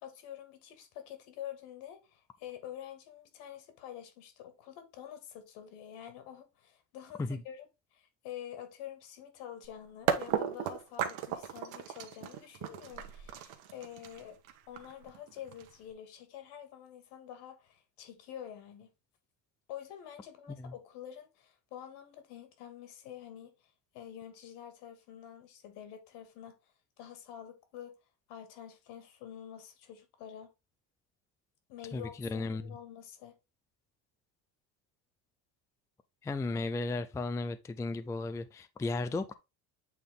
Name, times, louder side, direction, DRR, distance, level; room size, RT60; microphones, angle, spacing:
voice 1, 0.0-14.4 14.7-18.9 19.7-26.6 27.0-27.9 28.3-30.5 31.7-33.4, left 10 dB, 75° left, 2.2 m, -47 dB
sound 1, 9.6-9.7 10.1-15.9, right 9 dB, 80° right, 1.3 m, -35 dB
voice 2, 31.9-32.6 36.2-39.3, left 3 dB, 10° left, 0.4 m, -35 dB
8.4 x 3.6 x 3.6 m
cardioid pair, 120°, 41 cm